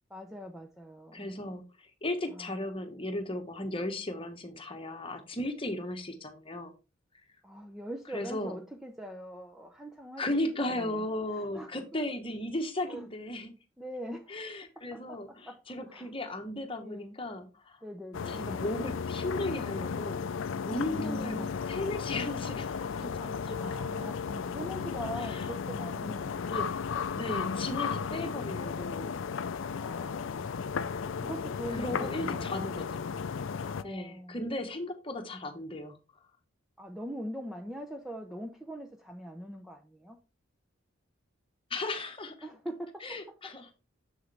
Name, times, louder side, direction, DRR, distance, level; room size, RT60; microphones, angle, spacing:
voice 1, 0.1-1.3 2.3-2.5 7.4-11.0 11.3-11.8 12.9-13.0 13.8-14.4 14.9-15.2 15.5-15.6 15.9-16.1 16.8-17.2 17.8-18.4 20.9-21.6 23.6-26.4 27.3-27.8 29.7-30.6 31.2-32.8 33.7-34.4 36.8-40.2 42.4-43.2, equal, ahead, 0.6 m, -42 dB
voice 2, 1.1-6.7 8.1-8.5 10.2-13.5 14.3-17.8 18.3-20.3 20.6-23.6 24.0-24.1 25.3-25.5 26.5-26.7 27.1-29.1 31.7-33.0 33.8-36.0 41.7-42.3 43.0-43.8, left 1 dB, 25° left, 1.1 m, -36 dB
sound 1, 18.1-33.8, left 6 dB, 70° left, 0.4 m, -34 dB
7.1 x 6.4 x 3.3 m
head